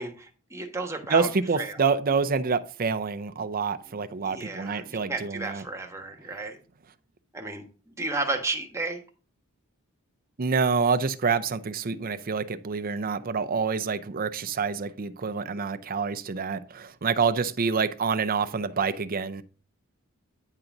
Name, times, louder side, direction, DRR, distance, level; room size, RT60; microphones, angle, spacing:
voice 1, 0.0-1.3 1.6-1.9 4.2-6.6 7.3-9.0, right 3 dB, 15° right, 1.2 m, -33 dB
voice 2, 1.1-5.6 10.4-19.4, right 5 dB, 45° right, 0.5 m, -27 dB
9.8 x 3.9 x 5.9 m
head